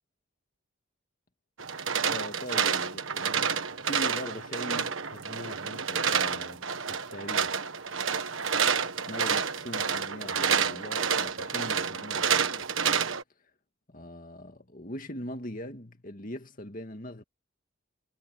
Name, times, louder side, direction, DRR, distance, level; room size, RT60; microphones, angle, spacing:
sound 1, 1.6-13.2, right 6 dB, 70° right, 1.5 m, -29 dB
voice 1, 2.1-3.5 3.8-7.6 9.1-12.7 13.9-17.2, left 1 dB, 40° left, 2.3 m, -41 dB
head